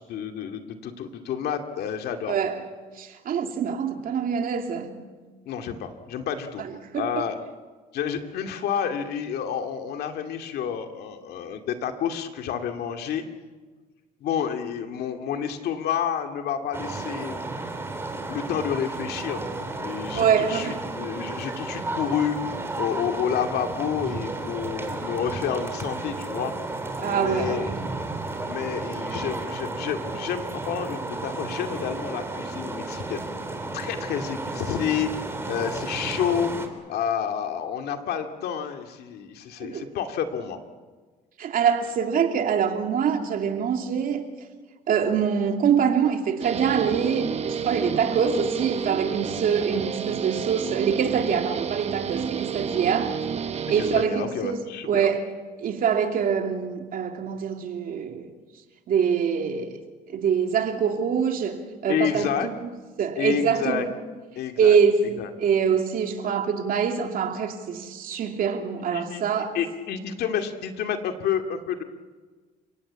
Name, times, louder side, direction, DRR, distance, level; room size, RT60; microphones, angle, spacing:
voice 1, 0.0-2.4 5.5-6.7 6.9-7.4 7.9-13.2 14.2-17.4 18.3-19.4 19.8-26.5 27.0-27.7 28.4-33.2 33.7-35.1 35.5-36.5 36.9-40.6 53.8-55.1 61.9-62.5 63.2-63.9 64.4-64.8 65.2-65.3 68.9-69.2 69.5-71.8, left 8 dB, 70° left, 2.3 m, -29 dB
voice 2, 2.3-2.6 3.0-5.0 6.6-7.3 20.2-20.8 27.0-27.9 39.6-39.9 41.4-44.3 44.9-53.2 53.7-54.6 54.9-55.3 55.6-58.3 58.9-59.8 60.1-62.7 63.0-63.8 64.6-65.0 65.4-69.5, right 7 dB, 55° right, 2.8 m, -24 dB
sound 1, 16.7-36.7, right 2 dB, 15° right, 3.3 m, -33 dB
Guitar, 46.4-54.1, right 7 dB, 40° right, 1.1 m, -30 dB
29.5 x 17.5 x 8.6 m
cardioid pair, 110°, 17 cm